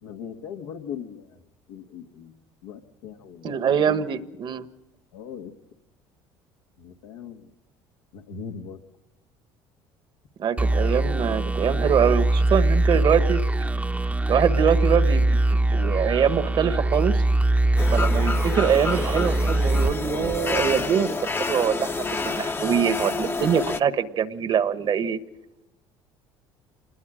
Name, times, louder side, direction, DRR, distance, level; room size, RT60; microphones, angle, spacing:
voice 1, 0.0-1.3 1.7-2.4 2.6-3.5 3.9-4.0 5.1-5.5 6.8-7.5 8.1-8.8, left 7 dB, 90° left, 3 dB, 1.8 m, -39 dB
voice 2, 3.4-4.7 10.4-13.4 14.3-17.2 17.9-25.2, right 8 dB, 50° right, 12 dB, 1.3 m, -24 dB
sound 1, 10.6-20.9, right 2 dB, 15° right, 0.9 m, -22 dB
sound 2, 17.8-23.8, left 3 dB, 20° left, 0.9 m, -29 dB
26.5 x 20.5 x 5.1 m, 0.96 s
supercardioid pair, 80°, 10 cm